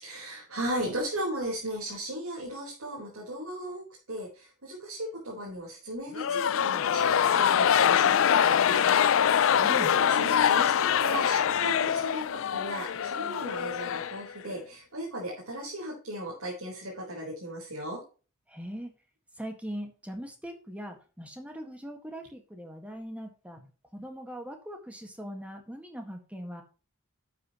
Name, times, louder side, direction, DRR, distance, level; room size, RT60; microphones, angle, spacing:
voice 1, 0.0-18.0, right 1 dB, 80° right, -3 dB, 4.2 m, -37 dB
sound 1, 6.1-14.6, left 8 dB, 65° left, 0.4 m, -24 dB
voice 2, 9.6-9.9 18.5-18.9 19.4-23.6 23.9-26.6, equal, 5° right, 4 dB, 1.7 m, -40 dB
11.5 x 8.4 x 3.0 m, 0.35 s
head